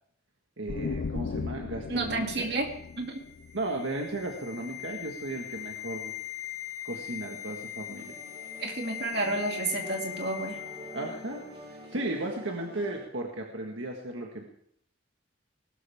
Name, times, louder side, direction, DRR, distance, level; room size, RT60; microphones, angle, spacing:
voice 1, 0.6-2.5 3.5-6.1 6.8-8.2 10.9-14.4, right 2 dB, 75° right, 1 dB, 1.7 m, -35 dB
sound 1, 0.7-4.3, left 4 dB, 65° left, 0.4 m, -37 dB
voice 2, 1.9-2.7 3.0-3.2 8.6-10.6, right 2 dB, 55° right, 2 dB, 2.4 m, -30 dB
sound 2, 2.3-11.5 11.8-12.0, left 13 dB, 10° left, 7.4 m, -41 dB
sound 3, 8.0-13.0, equal, 25° right, 2.2 m, -46 dB
19.0 x 12.5 x 3.6 m, 0.67 s
head